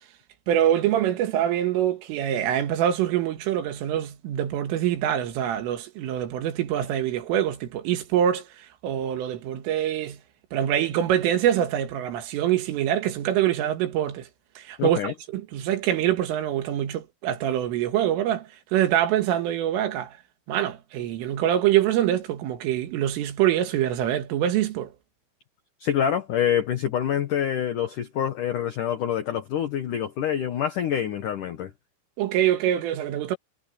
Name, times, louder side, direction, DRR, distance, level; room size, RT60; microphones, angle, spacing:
voice 1, 0.5-10.2 10.5-14.3 14.6-20.2 20.5-24.9 32.2-33.4, right 11 dB, 80° right, 4.4 m, -25 dB
voice 2, 14.8-15.1 25.8-31.7, left 9 dB, 85° left, 1.8 m, -26 dB
omnidirectional pair, 5.8 m